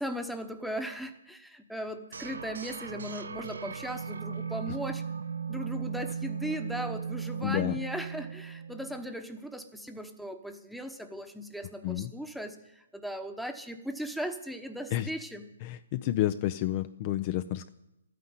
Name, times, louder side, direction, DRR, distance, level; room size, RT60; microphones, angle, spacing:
voice 1, 0.0-5.0 5.5-15.5, equal, ahead, 6 dB, 1.1 m, -38 dB
sound 1, 2.1-9.1, right 6 dB, 85° right, 1.0 m, -37 dB
voice 2, 7.4-7.7 11.8-12.1 14.9-15.1 15.6-17.7, left 14 dB, 35° left, 11 dB, 0.5 m, -30 dB
13.0 x 9.4 x 9.7 m, 0.94 s
hypercardioid pair, 155°, 0 cm